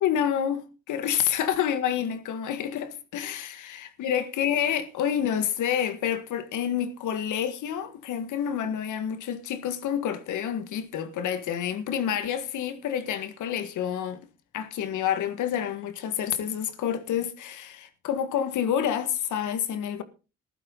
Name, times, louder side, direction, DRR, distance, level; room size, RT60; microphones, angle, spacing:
voice 1, 0.0-14.2 14.5-20.0, left 9 dB, 80° left, 1.8 m, -28 dB
15.0 x 12.0 x 3.9 m
cardioid pair, 90°, 30 cm